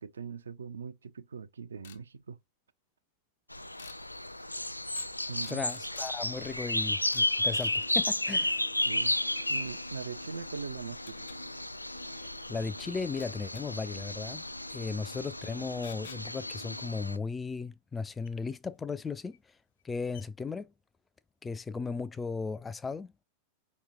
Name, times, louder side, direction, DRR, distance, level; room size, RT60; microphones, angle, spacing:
voice 1, 0.0-2.4 5.3-5.6 8.8-9.2 9.5-11.4, right 5 dB, 70° right, 0.5 m, -41 dB
sound 1, 1.8-2.0 3.8-4.0 4.9-5.1 5.4-6.1 7.1-7.3 7.6-7.8 10.0-10.1 11.1-11.4 13.2-13.6 15.8-16.2 18.2-18.3 19.3-19.4 19.8-19.9 20.1-20.2, left 10 dB, 60° left, 0.7 m, -51 dB
sound 2, 3.5-17.2, left 1 dB, 85° left, 0.3 m, -33 dB
voice 2, 5.5-8.6 12.2-14.4 14.7-19.4 19.8-20.7 21.4-23.2, left 4 dB, 15° left, 0.4 m, -36 dB
sound 3, 7.4-17.0, left 1 dB, 90° right, 0.9 m, -52 dB
5.4 x 3.0 x 2.9 m
figure-of-eight pair, 90°, 0 cm